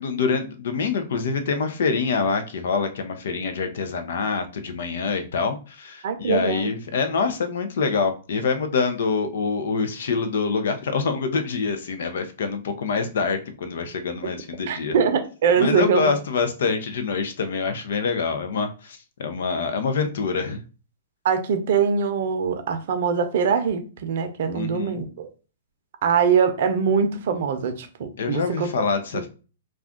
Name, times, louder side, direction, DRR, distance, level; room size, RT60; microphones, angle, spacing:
voice 1, 0.0-14.9 15.6-20.6 24.5-25.0 28.2-29.3, left 5 dB, 70° left, 0.6 m, -25 dB
voice 2, 6.0-6.7 14.7-16.1 21.2-25.3 26.0-28.7 29.1-29.2, right 6 dB, 60° right, 0.6 m, -23 dB
2.4 x 2.3 x 3.6 m
hypercardioid pair, 130°, 0 cm